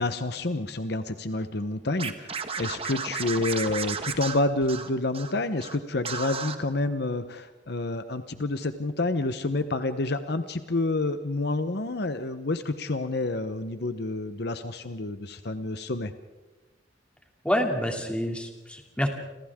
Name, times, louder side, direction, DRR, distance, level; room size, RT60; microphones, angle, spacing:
voice 1, 0.0-16.1, left 2 dB, 60° left, 10 dB, 1.0 m, -29 dB
Scratching (performance technique), 2.0-5.3 5.6-5.8 6.0-6.6, right 5 dB, 30° right, 1.3 m, -33 dB
voice 2, 17.4-19.1, equal, 5° left, 2 dB, 2.8 m, -27 dB
30.0 x 26.5 x 3.7 m, 1.1 s
head